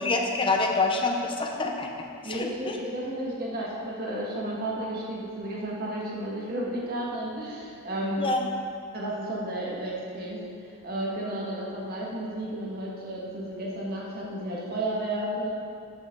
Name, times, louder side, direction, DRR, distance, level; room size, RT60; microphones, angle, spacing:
voice 1, 0.0-2.8 8.2-8.5, left 3 dB, 25° left, 2 dB, 0.8 m, -27 dB
voice 2, 2.2-8.3 8.9-15.5, right 1 dB, 40° right, -4 dB, 1.8 m, -32 dB
11.5 x 8.5 x 3.9 m, 2.3 s
head